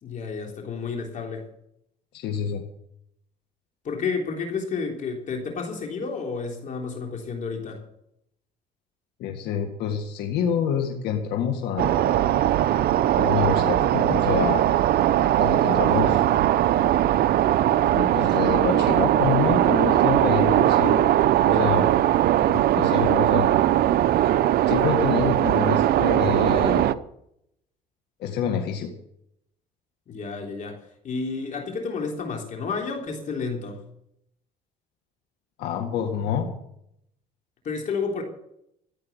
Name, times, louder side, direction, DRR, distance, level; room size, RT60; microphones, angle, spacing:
voice 1, 0.0-1.4 3.8-7.8 30.1-33.8 37.6-38.2, left 4 dB, 50° left, 1 dB, 3.6 m, -31 dB
voice 2, 2.1-2.6 9.2-12.2 13.1-14.6 15.4-16.2 17.9-21.0 21.5-21.9 22.5-23.6 24.7-26.9 28.2-28.9 35.6-36.5, left 8 dB, 80° left, 3 dB, 1.9 m, -27 dB
sound 1, 11.8-26.9, right 12 dB, 65° right, 0.7 m, -20 dB
14.5 x 8.8 x 8.2 m, 0.76 s
cardioid pair, 110°, 17 cm